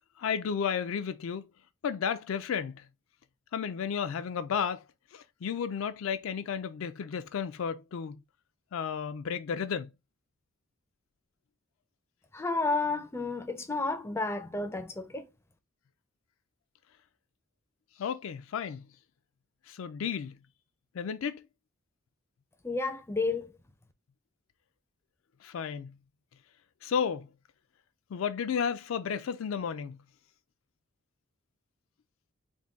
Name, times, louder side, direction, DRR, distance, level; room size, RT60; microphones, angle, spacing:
voice 1, 0.2-1.5 1.8-2.9 3.5-4.9 5.1-8.2 8.7-9.9 18.0-18.9 19.7-20.4 20.9-21.4 25.4-25.9 26.8-27.3 28.1-30.0, left 7 dB, 75° left, 0.4 m, -33 dB
voice 2, 12.3-15.3 22.6-23.5, left 3 dB, 10° left, 0.4 m, -31 dB
3.6 x 2.2 x 3.9 m
head